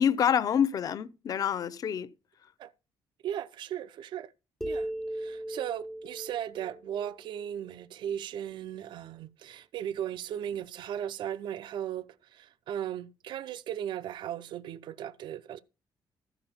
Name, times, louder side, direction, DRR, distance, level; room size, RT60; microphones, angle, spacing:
voice 1, 0.0-2.1, left 8 dB, 50° left, 0.6 m, -27 dB
voice 2, 3.2-4.3 4.7-15.6, right 10 dB, 70° right, 0.5 m, -37 dB
sound 1, 4.6-8.1, right 1 dB, 5° left, 0.4 m, -38 dB
14.0 x 4.8 x 5.6 m
cardioid pair, 165°, 8 cm